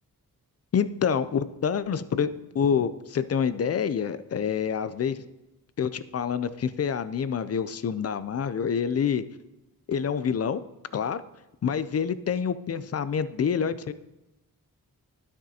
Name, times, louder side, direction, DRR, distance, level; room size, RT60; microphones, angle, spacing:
voice 1, 0.7-5.2 5.8-9.2 9.9-10.6 10.9-11.2 11.6-13.9, left 7 dB, 45° left, 14 dB, 0.4 m, -27 dB
12.0 x 6.1 x 2.8 m, 0.95 s
wide cardioid pair, 105°, 35 cm